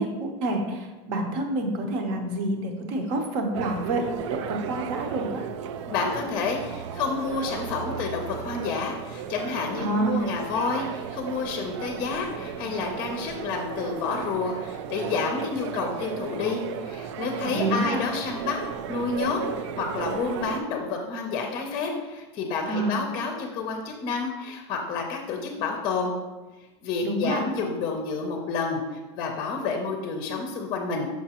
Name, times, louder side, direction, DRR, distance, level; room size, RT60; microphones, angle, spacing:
voice 1, 0.0-4.0 4.3-5.4 9.8-10.2 17.4-18.0 22.7-22.9 27.0-27.5, right 2 dB, 50° right, 4 dB, 0.9 m, -28 dB
sound 1, 3.5-20.6, right 8 dB, 85° right, 0.4 m, -35 dB
voice 2, 5.9-18.6 18.9-26.1 26.8-31.1, left 4 dB, 30° left, 3 dB, 0.6 m, -29 dB
5.9 x 5.8 x 2.9 m, 1.2 s
supercardioid pair, 175°, 15 cm